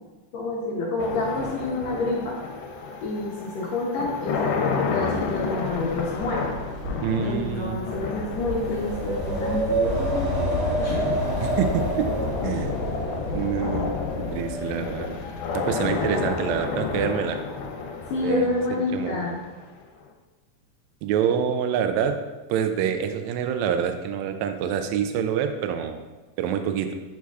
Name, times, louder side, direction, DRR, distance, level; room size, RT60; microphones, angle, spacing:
voice 1, 0.3-2.4 3.0-6.5 7.2-11.2 18.1-19.4, left 2 dB, 70° left, -4 dB, 1.8 m, -28 dB
sound 1, 1.0-20.0, left 5 dB, 85° left, 2.1 m, -31 dB
Wind, 5.3-15.4, equal, 50° right, 1.3 m, -29 dB
voice 2, 7.0-7.8 11.4-12.1 12.4-12.7 13.3-14.0 14.3-15.1 15.5-17.4 18.2-18.5 18.9-19.3 21.0-22.2 22.5-26.0 26.4-26.9, right 8 dB, 85° right, 7 dB, 1.6 m, -26 dB
8.4 x 4.8 x 2.3 m, 1.2 s
omnidirectional pair, 3.7 m